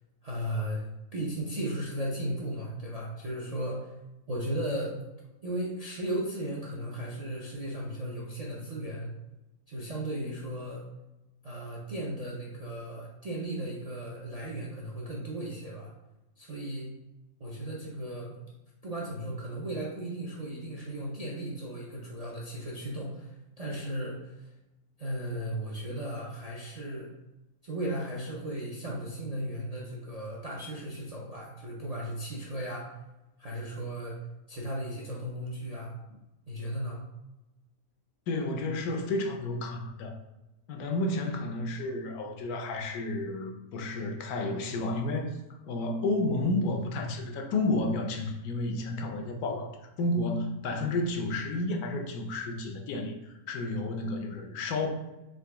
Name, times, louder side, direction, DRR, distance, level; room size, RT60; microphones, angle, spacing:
voice 1, 0.2-0.9 1.1-3.9 4.3-5.0 5.4-9.1 9.7-10.9 11.4-15.9 16.4-16.9 17.4-18.4 18.8-24.5 25.0-27.1 27.6-32.9 33.4-34.2 34.5-35.9 36.5-37.0, right 1 dB, 50° right, -5 dB, 0.4 m, -36 dB
voice 2, 38.3-40.1 40.7-45.3 45.6-54.9, left 2 dB, 85° left, 3 dB, 1.2 m, -31 dB
3.9 x 3.1 x 3.5 m, 0.99 s
omnidirectional pair, 1.5 m